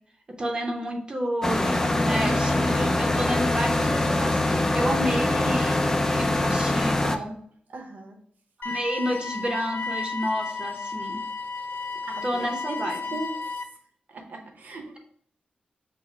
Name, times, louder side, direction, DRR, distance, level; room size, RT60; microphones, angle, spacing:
voice 1, 0.4-7.3 8.6-11.2 12.2-13.2, equal, 30° right, 2 dB, 0.6 m, -30 dB
sound 1, 1.4-7.2, left 2 dB, 15° left, 0.4 m, -23 dB
voice 2, 7.7-8.2 12.0-13.4 14.1-15.0, right 3 dB, 60° right, 4 dB, 0.8 m, -38 dB
sound 2, 8.6-13.6, left 4 dB, 75° left, 0.5 m, -33 dB
5.8 x 2.0 x 4.2 m, 0.63 s
wide cardioid pair, 135°, 3 cm